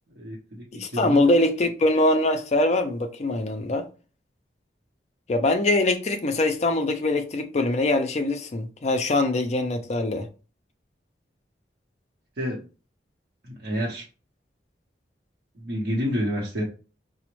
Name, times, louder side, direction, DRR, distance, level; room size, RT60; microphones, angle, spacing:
voice 1, 0.2-1.2 12.4-12.6 13.4-14.1 15.6-16.6, equal, 60° right, 0.7 m, -29 dB
voice 2, 0.8-3.8 5.3-10.3, left 2 dB, 40° left, 0.4 m, -23 dB
4.9 x 2.1 x 3.0 m
head